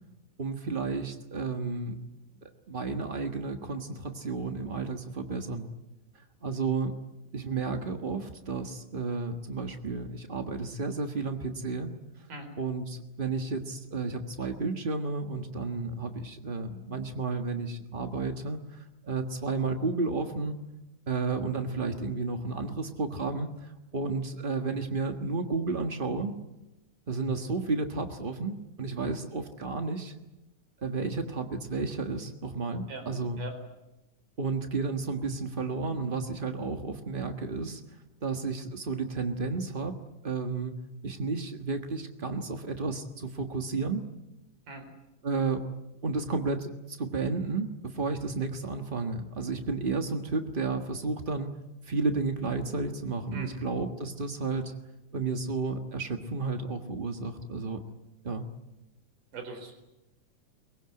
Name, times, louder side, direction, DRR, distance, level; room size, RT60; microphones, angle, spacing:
voice 1, 0.4-2.0 2.7-5.7 6.4-7.0 7.3-11.9 12.6-20.6 21.1-26.4 27.1-30.1 30.8-33.4 34.4-37.8 38.2-40.0 40.2-44.0 45.2-45.7 46.0-51.5 51.9-54.8 55.1-57.8 58.2-58.5, right 4 dB, 70° right, 6 dB, 0.5 m, -32 dB
voice 2, 59.3-59.7, right 3 dB, 85° right, 7 dB, 5.7 m, -41 dB
23.5 x 21.0 x 9.7 m, 0.96 s
omnidirectional pair, 3.7 m